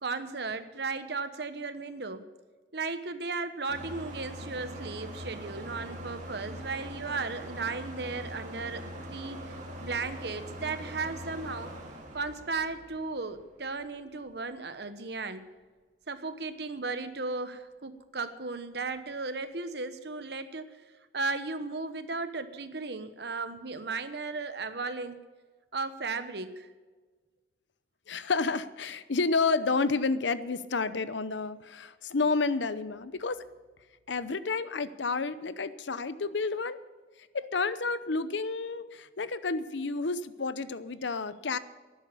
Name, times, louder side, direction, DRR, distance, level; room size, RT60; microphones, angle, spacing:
voice 1, 0.0-2.2 2.7-11.7 12.1-15.5 16.1-20.7 21.1-25.2 25.7-26.7, right 3 dB, 60° right, 11 dB, 1.1 m, -35 dB
sound 1, 3.7-13.9, equal, 40° right, 2.5 m, -42 dB
voice 2, 28.1-33.4 34.1-36.8 37.3-41.6, left 4 dB, 80° left, 14 dB, 0.8 m, -30 dB
12.5 x 10.5 x 7.0 m, 1.4 s
head